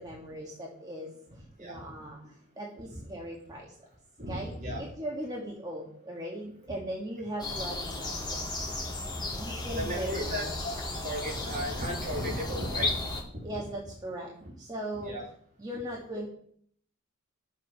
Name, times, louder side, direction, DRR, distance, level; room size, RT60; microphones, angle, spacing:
voice 1, 0.0-3.7 4.3-8.5 9.4-10.5 13.4-15.2 15.6-16.3, right 1 dB, 20° right, -2 dB, 1.7 m, -39 dB
voice 2, 4.2-4.8 9.2-10.7 11.0-13.0 13.3-13.6 14.4-14.5 14.9-15.2, equal, 40° right, -2 dB, 3.2 m, -35 dB
sound 1, 7.4-13.2, left 2 dB, 20° left, 1.9 m, -34 dB
11.5 x 7.4 x 5.7 m, 0.63 s
head